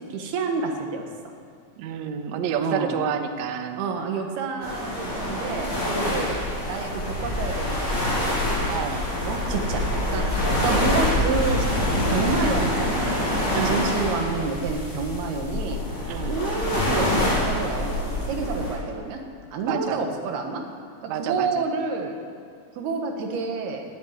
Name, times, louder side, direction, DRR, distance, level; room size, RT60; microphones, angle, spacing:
voice 1, 0.1-1.3 2.6-3.0 3.8-8.1 9.2-9.9 10.1-10.3 10.6-11.7 12.0-15.8 16.3-19.2 19.5-20.6 21.0-22.2 22.8-23.8, right 4 dB, 90° right, 3 dB, 3.4 m, -29 dB
voice 2, 1.8-3.8 8.7-9.0 13.5-13.9 16.1-16.4 19.6-20.0 21.1-21.6, right 8 dB, 70° right, 6 dB, 1.8 m, -29 dB
sound 1, 4.6-18.7, left 1 dB, 50° left, 7.1 m, -25 dB
17.5 x 8.3 x 9.6 m, 2.2 s
omnidirectional pair, 4.4 m